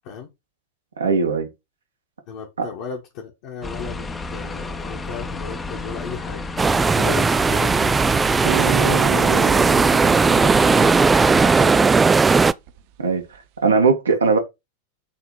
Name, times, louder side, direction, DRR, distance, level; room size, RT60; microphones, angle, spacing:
voice 1, 1.0-1.5 2.6-2.7 13.0-13.2 13.6-14.4, right 4 dB, 70° right, 1.7 m, -19 dB
voice 2, 2.3-6.5 6.9-7.9 8.4-11.9 14.1-14.2, left 6 dB, 45° left, 1.6 m, -34 dB
sound 1, 3.6-11.7, left 3 dB, 15° left, 0.9 m, -32 dB
sound 2, 6.6-12.5, right 4 dB, 15° right, 0.3 m, -17 dB
sound 3, 8.4-11.2 12.7-12.8, right 12 dB, 50° right, 0.8 m, -28 dB
8.4 x 3.5 x 4.8 m
figure-of-eight pair, 90°, 0 cm